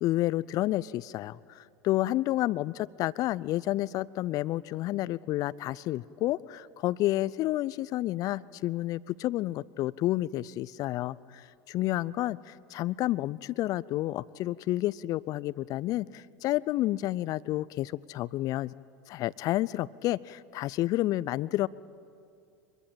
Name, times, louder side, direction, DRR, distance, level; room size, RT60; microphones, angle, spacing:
voice 1, 0.0-11.4 11.7-18.7 19.1-21.7, left 16 dB, 40° left, 21 dB, 0.6 m, -30 dB
24.5 x 22.0 x 9.0 m, 2.5 s
figure-of-eight pair, 80°, 9 cm